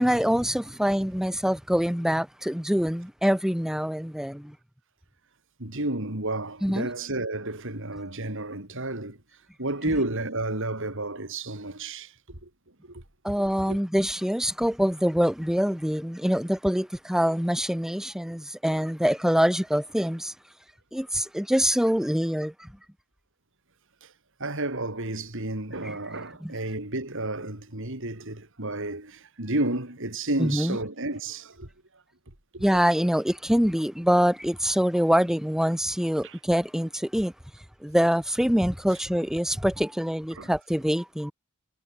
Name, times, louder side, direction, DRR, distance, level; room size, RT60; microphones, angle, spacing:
voice 1, 0.0-4.5 6.6-6.9 13.2-20.3 20.9-22.7 25.8-26.0 26.4-26.5 30.4-30.8 32.6-37.3 37.8-41.3, equal, ahead, 1.1 m, -25 dB
voice 2, 5.6-9.2 9.6-12.5 12.8-13.0 13.7-13.8 24.0-24.1 24.4-32.0 32.5-32.8 36.2-36.4 40.3-40.5, right 2 dB, 60° right, 4.6 m, -31 dB
head